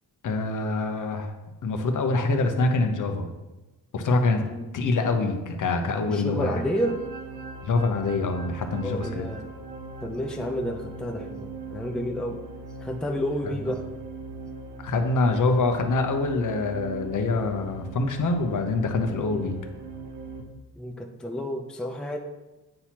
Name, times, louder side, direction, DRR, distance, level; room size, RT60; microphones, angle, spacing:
voice 1, 0.2-1.3 1.6-3.3 3.9-4.4 4.7-6.6 7.6-9.3 14.8-19.6, left 3 dB, 50° left, 5 dB, 0.9 m, -25 dB
voice 2, 6.1-7.0 8.8-9.5 10.0-12.4 12.8-13.8 19.3-19.5 20.8-22.2, equal, ahead, 2 dB, 0.6 m, -30 dB
sound 1, 6.1-20.4, right 3 dB, 85° right, 1.0 m, -40 dB
8.7 x 4.1 x 3.0 m, 1.1 s
supercardioid pair, 75°, 41 cm